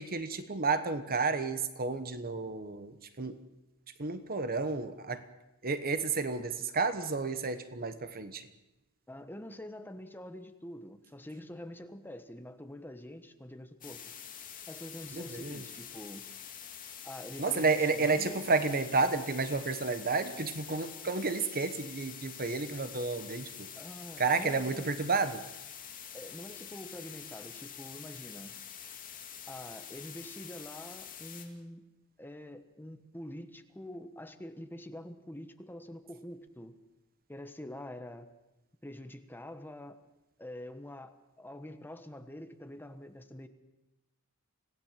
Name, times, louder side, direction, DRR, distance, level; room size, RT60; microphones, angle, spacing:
voice 1, 0.0-3.4 4.0-5.2 5.6-8.5 15.1-15.6 17.4-23.7 24.2-25.4, right 4 dB, 45° right, 11 dB, 1.2 m, -31 dB
voice 2, 9.1-14.1 14.7-16.2 17.0-18.5 23.7-24.9 26.1-28.5 29.5-31.8 32.2-36.8 37.3-38.3 38.8-40.0 40.4-43.5, left 1 dB, 10° left, 8 dB, 1.3 m, -46 dB
sound 1, 13.8-31.5, left 9 dB, 40° left, 2.9 m, -46 dB
26.0 x 17.0 x 7.5 m, 0.99 s
head